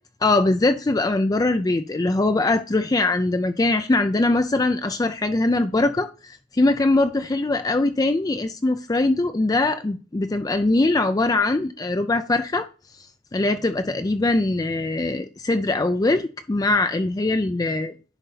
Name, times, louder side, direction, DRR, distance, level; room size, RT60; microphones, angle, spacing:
voice 1, 0.2-12.7 13.3-17.9, left 2 dB, 20° left, 0.4 m, -22 dB
10.0 x 4.0 x 3.9 m
head